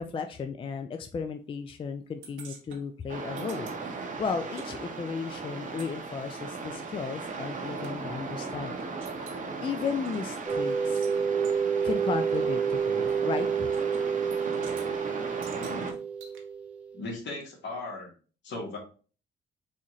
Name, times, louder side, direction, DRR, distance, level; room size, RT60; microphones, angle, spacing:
voice 1, 0.0-9.3 9.6-11.1 11.8-13.7, left 5 dB, 25° left, 6 dB, 0.3 m, -35 dB
sound 1, 2.2-4.7 4.9-8.0 8.4-8.5 8.8-9.4 9.9-11.2 11.4-11.6 12.3-12.4 13.7-14.0 14.3-14.9 15.4-16.4, right 5 dB, 80° right, 0.9 m, -50 dB
sound 2, 3.1-15.9, right 4 dB, 40° right, 0.8 m, -37 dB
sound 3, 10.5-17.0, right 6 dB, 5° right, 0.9 m, -29 dB
voice 2, 15.5-16.0 16.9-18.1 18.4-18.8, left 2 dB, 65° left, -1 dB, 1.6 m, -37 dB
4.0 x 2.5 x 2.9 m, 0.38 s
cardioid pair, 90°, 20 cm